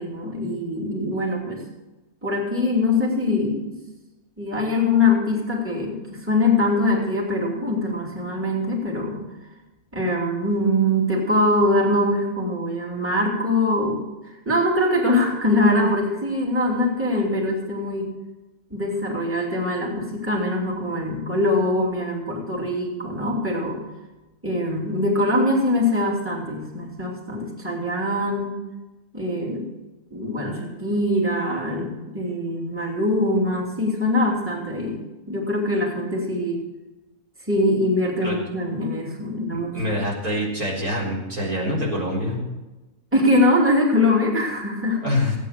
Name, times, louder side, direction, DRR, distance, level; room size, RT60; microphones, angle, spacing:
voice 1, 0.0-1.6 2.2-3.8 4.4-9.2 9.9-14.0 14.4-18.1 18.7-23.8 24.4-28.6 29.1-29.7 30.1-35.0 35.3-36.6 37.5-39.8 43.1-45.0, left 1 dB, 10° right, -2 dB, 3.0 m, -23 dB
voice 2, 39.5-42.4 45.0-45.4, left 1 dB, 80° right, -3 dB, 4.9 m, -25 dB
16.5 x 9.2 x 6.7 m, 1.1 s
omnidirectional pair, 1.5 m